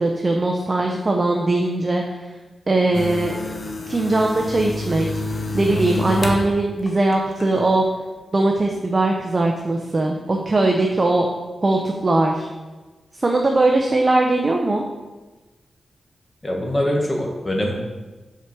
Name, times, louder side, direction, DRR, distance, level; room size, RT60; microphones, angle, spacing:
voice 1, 0.0-2.0 2.7-3.3 3.9-5.1 5.5-7.8 8.3-11.3 11.6-12.5 13.2-14.8, right 2 dB, 35° right, 1 dB, 0.7 m, -20 dB
sound 1, 2.9-6.5 6.9-7.6, left 2 dB, 50° left, 0.9 m, -28 dB
voice 2, 16.4-17.7, left 1 dB, 20° left, 0 dB, 1.5 m, -23 dB
5.7 x 4.8 x 6.0 m, 1.2 s
wide cardioid pair, 105°, 0 cm